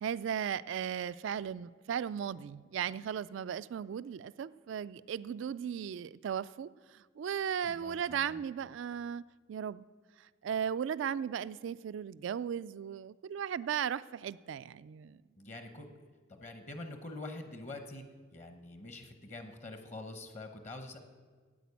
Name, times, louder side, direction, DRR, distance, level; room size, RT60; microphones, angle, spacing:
voice 1, 0.0-9.2 9.5-9.8 10.4-15.2, right 8 dB, 65° right, 17 dB, 0.3 m, -36 dB
voice 2, 7.6-8.4 15.4-15.9 16.3-18.0 18.3-21.0, left 2 dB, 35° left, 6 dB, 1.0 m, -45 dB
10.0 x 8.5 x 8.3 m, 1.5 s
head